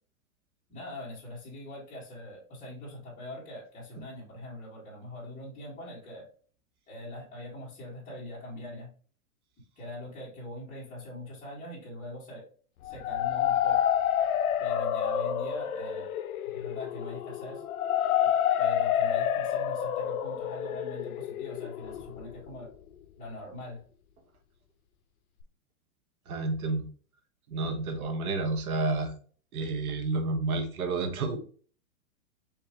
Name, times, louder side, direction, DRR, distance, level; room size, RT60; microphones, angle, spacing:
voice 1, 0.7-6.3 6.9-8.9 9.8-12.5 12.8-13.8 14.6-16.1 16.4-17.6 18.6-22.7 23.2-23.8, left 1 dB, 20° left, -6 dB, 2.2 m, -42 dB
sound 1, 12.8-22.7, left 10 dB, 80° left, 0.6 m, -28 dB
voice 2, 26.3-26.9 27.5-29.2 29.5-31.4, right 3 dB, 75° right, 5 dB, 1.4 m, -30 dB
4.9 x 3.3 x 3.2 m, 0.43 s
hypercardioid pair, 150°, 43 cm